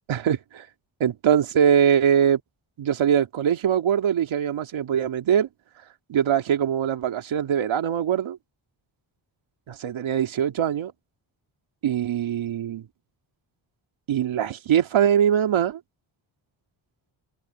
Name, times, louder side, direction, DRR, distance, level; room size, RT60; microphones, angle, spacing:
voice 1, 0.1-0.7 1.0-2.4 2.8-5.5 6.1-8.4 9.7-10.9 11.8-12.8 14.1-15.8, right 9 dB, 75° right, 2.6 m, -22 dB
open air
wide cardioid pair, 140°, 48 cm